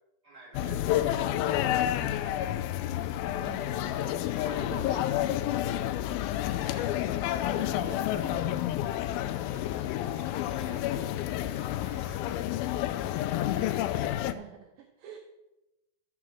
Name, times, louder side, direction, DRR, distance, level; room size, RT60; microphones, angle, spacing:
voice 1, 0.2-2.8 4.4-5.1 5.5-5.6 6.5-7.0 8.8-12.4 12.7-14.3, right 2 dB, 25° right, -5 dB, 4.1 m, -53 dB
sound 1, 0.5-14.3, left 12 dB, 85° left, 2.4 m, -30 dB
voice 2, 3.4-5.1 7.3-8.6 13.9-15.2, right 7 dB, 75° right, 4 dB, 2.4 m, -46 dB
12.5 x 6.2 x 6.2 m, 0.96 s
omnidirectional pair, 4.2 m